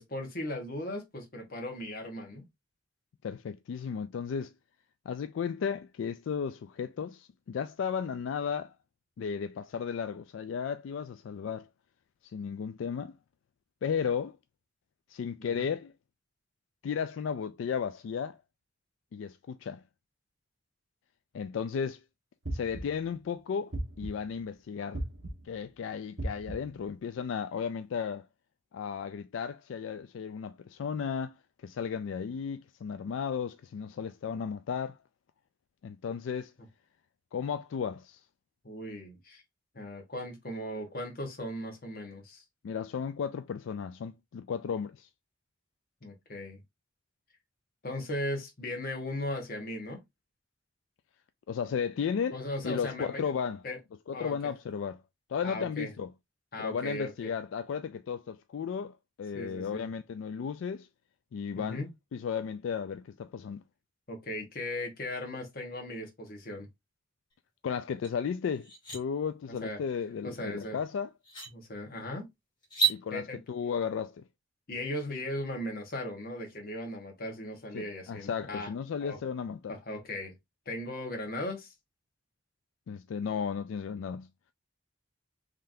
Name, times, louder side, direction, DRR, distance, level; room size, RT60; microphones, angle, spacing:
voice 1, 0.0-2.4 15.4-15.7 38.6-39.4 39.7-42.4 46.0-46.6 47.8-50.0 52.3-53.3 53.6-53.8 54.1-54.3 55.4-55.9 56.5-57.3 59.3-59.9 61.6-61.9 64.1-66.7 69.6-69.8 70.2-70.8 71.5-72.3 73.1-73.4 74.7-78.7 79.0-79.2 79.7-80.3 80.6-81.7, left 1 dB, 50° left, 1.3 m, -37 dB
voice 2, 3.2-4.5 5.1-8.7 9.2-11.7 12.3-13.1 13.8-14.4 15.1-15.9 16.8-18.4 19.1-19.8 21.3-22.0 22.5-25.0 25.4-28.3 28.7-31.4 31.6-35.0 35.8-36.5 37.3-38.2 42.6-45.1 51.5-52.4 52.6-53.6 54.1-55.0 55.3-56.1 56.6-60.9 61.3-61.8 62.1-63.6 67.6-71.1 72.9-74.2 77.7-79.8 82.9-84.3, left 6 dB, 80° left, 0.3 m, -34 dB
sound 1, 22.4-23.1 23.7-24.4 24.9-25.6 26.2-26.8, right 1 dB, 75° right, 1.2 m, -37 dB
sound 2, 68.0-68.1 68.5-69.0 70.6-70.7 71.2-71.5 72.6-73.0, right 6 dB, 25° left, 1.9 m, -29 dB
3.7 x 3.3 x 2.6 m
head